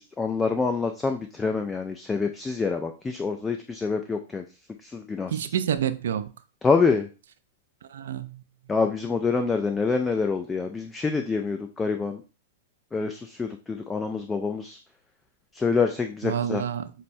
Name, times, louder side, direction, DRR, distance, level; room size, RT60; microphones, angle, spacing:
voice 1, 0.0-4.4 4.9-5.5 6.6-7.1 8.7-12.2 12.9-14.8 15.6-16.6, left 4 dB, 15° left, 0.3 m, -26 dB
voice 2, 5.3-6.3 7.9-8.3 16.2-16.9, right 9 dB, 75° right, 0.3 m, -28 dB
5.3 x 2.1 x 2.6 m
hypercardioid pair, 120°, 0 cm